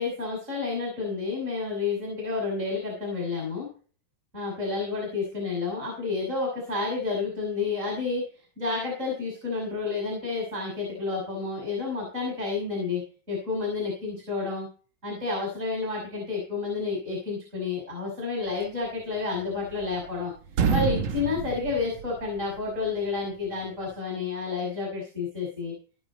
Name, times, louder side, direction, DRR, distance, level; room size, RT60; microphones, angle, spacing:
voice 1, 0.0-3.7 4.3-8.2 8.6-13.0 13.3-14.7 15.0-20.3 20.7-25.7, left 4 dB, 20° right, -1 dB, 6.0 m, -30 dB
sound 1, 19.3-20.2 20.5-22.6, right 6 dB, 85° right, 1.1 m, -28 dB
18.5 x 7.0 x 4.3 m, 0.39 s
omnidirectional pair, 3.8 m